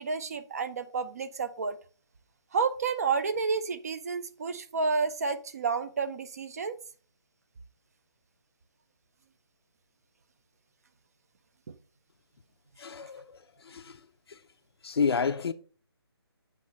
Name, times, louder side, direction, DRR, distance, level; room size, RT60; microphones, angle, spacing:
voice 1, 0.0-1.8 2.5-6.8 11.7-11.8 13.0-13.1, right 5 dB, 35° right, 0.5 m, -30 dB
voice 2, 12.8-14.0 14.3-14.4 14.8-15.5, left 5 dB, 70° left, 0.5 m, -30 dB
7.7 x 3.1 x 5.3 m
hypercardioid pair, 165°, 14 cm